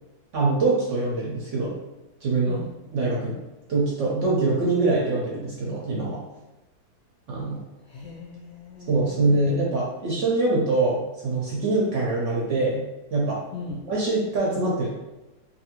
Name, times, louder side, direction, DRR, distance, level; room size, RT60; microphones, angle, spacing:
voice 1, 0.3-1.8 2.2-2.6 2.9-3.4 3.7-6.2 7.3-7.6 8.9-12.8 13.1-13.4 13.9-14.9, right 2 dB, 65° right, -4 dB, 0.8 m, -24 dB
voice 2, 7.9-9.7 13.5-13.8, left 3 dB, 70° left, -5 dB, 0.7 m, -38 dB
2.6 x 2.6 x 2.8 m, 1.0 s
omnidirectional pair, 1.7 m